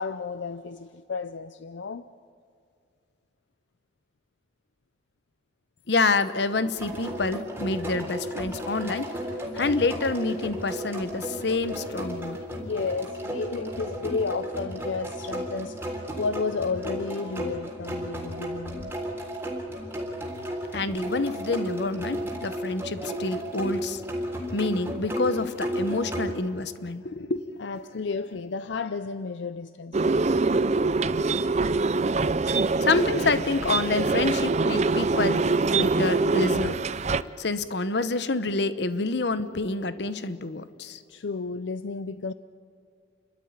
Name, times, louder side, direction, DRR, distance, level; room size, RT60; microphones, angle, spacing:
voice 1, 0.0-2.1 12.6-18.9 27.6-30.3 41.1-42.3, left 4 dB, 80° left, 0.6 m, -32 dB
voice 2, 5.9-12.4 20.7-24.0 24.5-27.4 32.8-36.9 37.1-41.0, left 3 dB, 65° left, 0.9 m, -27 dB
sound 1, 6.8-26.3, equal, 10° right, 3.7 m, -34 dB
sound 2, 29.9-37.2, right 3 dB, 35° right, 0.5 m, -24 dB
29.5 x 12.5 x 9.6 m
head